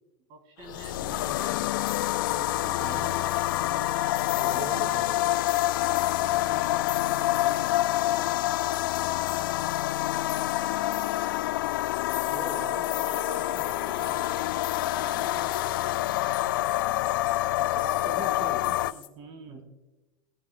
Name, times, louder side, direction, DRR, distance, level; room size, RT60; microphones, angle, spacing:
voice 1, 0.3-1.6 2.3-5.1 6.2-8.6 12.5-14.5 14.9-16.1 18.6-19.6, right 3 dB, 55° right, 5 dB, 2.6 m, -47 dB
sound 1, 0.6-18.9, left 15 dB, 75° left, 0.4 m, -27 dB
sound 2, 0.7-19.1, left 14 dB, 45° left, 1.2 m, -44 dB
voice 2, 4.4-5.1 12.2-12.8 17.5-18.6 19.5-19.6, right 4 dB, 25° right, 3 dB, 1.6 m, -40 dB
19.0 x 14.5 x 2.2 m, 1.1 s
supercardioid pair, 115°, 11 cm